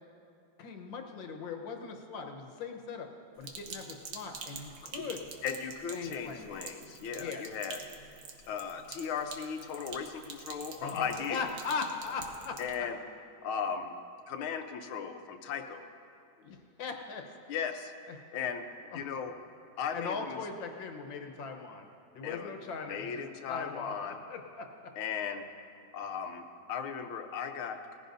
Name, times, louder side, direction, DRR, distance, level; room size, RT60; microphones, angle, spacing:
voice 1, 0.6-3.1 3.4-5.2 5.9-6.5 7.2-7.5 10.7-12.6 16.4-17.3 18.1-18.2 18.9-19.1 19.9-21.9 22.1-24.9, left 5 dB, 70° left, 4 dB, 1.7 m, -39 dB
Sink (filling or washing), 3.4-12.7, right 5 dB, 60° right, 1.4 m, -47 dB
voice 2, 5.4-7.8 8.5-11.5 12.6-13.0 13.4-14.0 14.3-15.9 17.5-17.9 18.3-18.7 18.9-19.3 19.8-20.4 22.2-22.6 22.8-24.2 25.0-25.5 25.9-28.0, left 7 dB, 90° left, 6 dB, 1.7 m, -37 dB
19.0 x 15.0 x 2.6 m, 2.5 s
omnidirectional pair, 2.2 m